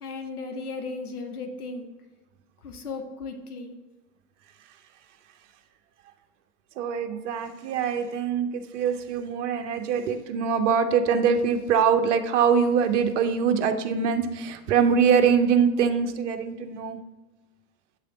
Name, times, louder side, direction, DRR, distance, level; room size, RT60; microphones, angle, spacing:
voice 1, 0.0-2.0 2.6-3.7, left 3 dB, 80° left, 5 dB, 0.9 m, -36 dB
voice 2, 6.8-17.0, right 6 dB, 55° right, 7 dB, 0.7 m, -23 dB
7.5 x 3.3 x 3.8 m, 1.2 s
figure-of-eight pair, 100°, 45 cm